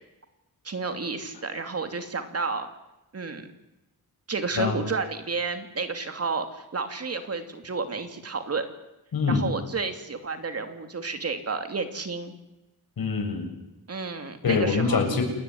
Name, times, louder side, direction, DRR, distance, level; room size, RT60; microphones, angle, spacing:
voice 1, 0.6-2.7 3.1-3.5 4.3-8.7 9.3-12.3 13.9-15.0, right 4 dB, 40° right, 7 dB, 2.8 m, -31 dB
voice 2, 9.1-9.5 13.0-13.5 14.4-15.2, left 5 dB, 75° left, 5 dB, 7.1 m, -24 dB
29.0 x 20.0 x 9.7 m, 0.97 s
wide cardioid pair, 170°, 36 cm